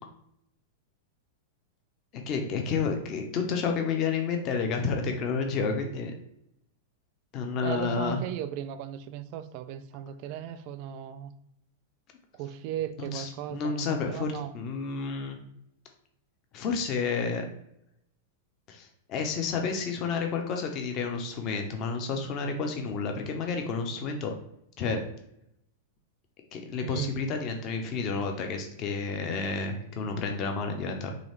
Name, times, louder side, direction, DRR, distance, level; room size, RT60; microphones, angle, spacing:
voice 1, 2.3-6.1 7.3-8.2 13.0-15.4 16.5-17.5 18.7-24.3 24.8-25.0 26.5-31.1, left 5 dB, 40° left, 4 dB, 0.7 m, -30 dB
voice 2, 7.6-11.3 12.3-14.5 26.8-27.2, right 10 dB, 50° right, 12 dB, 0.4 m, -36 dB
4.0 x 3.2 x 3.2 m, 0.79 s
hypercardioid pair, 100°, 0 cm